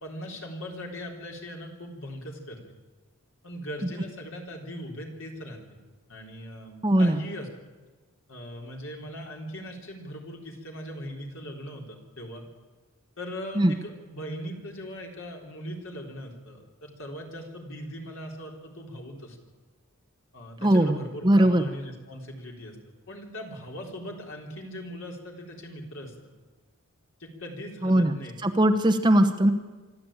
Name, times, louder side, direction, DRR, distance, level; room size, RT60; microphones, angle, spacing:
voice 1, 0.0-2.6 3.4-5.8 6.1-7.5 8.3-12.4 13.2-19.4 20.3-22.8 23.1-26.1 27.2-28.4, equal, 65° left, 1 dB, 3.8 m, -39 dB
voice 2, 6.8-7.2 13.6-13.8 20.6-21.6 27.8-28.1 28.4-29.5, right 1 dB, 20° right, 6 dB, 1.0 m, -20 dB
25.0 x 13.0 x 8.9 m, 1.3 s
head